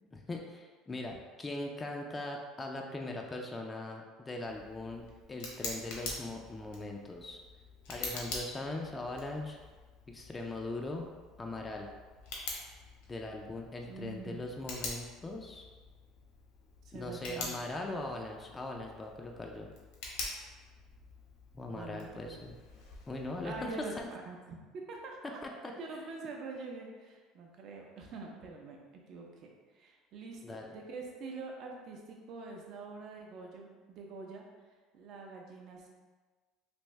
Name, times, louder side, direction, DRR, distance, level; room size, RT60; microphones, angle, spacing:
voice 1, 0.1-7.4 7.9-9.6 10.1-11.1 11.4-11.9 13.1-15.6 16.9-19.7 21.5-22.5 23.1-24.1 25.4-25.5 30.4-30.7, left 2 dB, 15° left, 1 dB, 0.3 m, -40 dB
Tick, 4.4-24.1, left 3 dB, 85° left, 0.9 m, -46 dB
voice 2, 13.8-14.5 16.8-17.6 17.9-18.2 21.7-22.5 23.4-23.9 24.3-28.8 29.1-34.4 34.9-35.9, right 3 dB, 50° right, 0 dB, 0.6 m, -45 dB
3.3 x 2.6 x 3.1 m, 1.4 s
cardioid pair, 130°, 0 cm